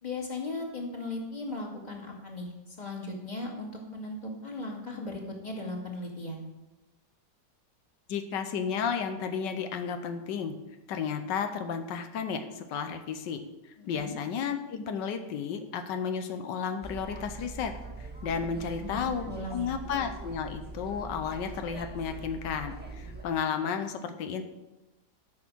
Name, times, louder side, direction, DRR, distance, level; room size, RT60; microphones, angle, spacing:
voice 1, 0.0-6.5 13.8-14.2 18.5-19.8, left 2 dB, 25° left, 0 dB, 2.1 m, -38 dB
voice 2, 8.1-10.5 10.9-17.7 18.0-24.4, left 6 dB, 90° left, 7 dB, 1.5 m, -33 dB
sound 1, 16.8-23.2, right 3 dB, 5° right, 1.2 m, -42 dB
12.5 x 6.2 x 6.2 m, 1.0 s
omnidirectional pair, 1.8 m